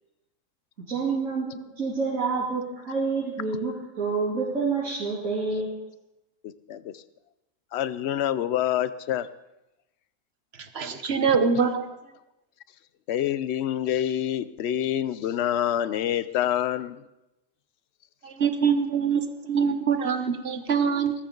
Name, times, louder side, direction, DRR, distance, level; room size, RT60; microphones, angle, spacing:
voice 1, 0.8-5.7, right 4 dB, 65° right, -7 dB, 3.5 m, -28 dB
voice 2, 6.4-7.0 7.7-9.3 13.1-17.0, left 11 dB, 60° left, 15 dB, 0.8 m, -27 dB
voice 3, 10.6-11.9 18.2-21.1, right 6 dB, 50° right, 8 dB, 1.3 m, -24 dB
19.0 x 14.5 x 3.9 m, 0.95 s
omnidirectional pair, 1.5 m